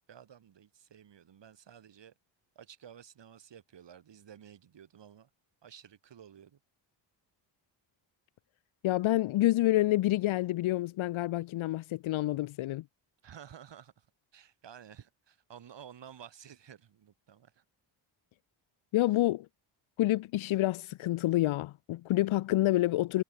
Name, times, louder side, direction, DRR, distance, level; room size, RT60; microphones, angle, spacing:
voice 1, 0.0-2.1 2.6-5.3 5.6-6.6 13.2-14.1 14.3-17.6 19.1-19.2, right 9 dB, 65° right, 5.7 m, -53 dB
voice 2, 8.8-12.8 18.9-19.5 20.0-23.2, left 16 dB, 90° left, 0.8 m, -28 dB
cardioid pair, 100°, 46 cm